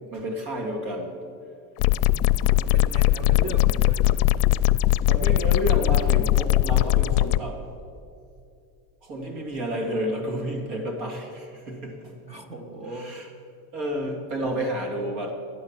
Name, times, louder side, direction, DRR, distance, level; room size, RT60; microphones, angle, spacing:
voice 1, 0.1-1.2 3.4-3.5 5.1-7.7 9.0-12.2 12.9-13.3 13.7-15.3, equal, 65° right, 1 dB, 2.6 m, -30 dB
sound 1, 1.8-7.4, left 15 dB, 80° left, 0.6 m, -20 dB
voice 2, 1.8-4.2 12.3-13.2, right 1 dB, 15° right, 8 dB, 0.4 m, -38 dB
12.0 x 9.5 x 7.4 m, 2.5 s
cardioid pair, 175°, 46 cm